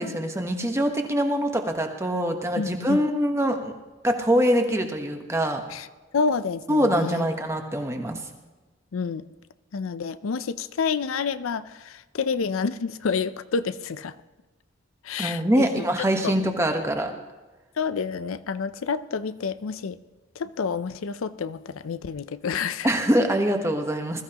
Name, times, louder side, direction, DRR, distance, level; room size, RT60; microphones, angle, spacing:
voice 1, 0.0-3.7 4.0-5.6 6.7-8.2 15.2-17.1 22.8-24.2, equal, 15° right, 4 dB, 1.1 m, -24 dB
voice 2, 2.6-3.0 5.7-5.9 6.1-7.2 8.9-9.3 9.7-14.2 15.0-15.9 16.2-16.3 17.8-20.0 20.4-22.9, left 5 dB, 80° left, 14 dB, 0.5 m, -29 dB
21.0 x 14.0 x 2.9 m, 1.2 s
head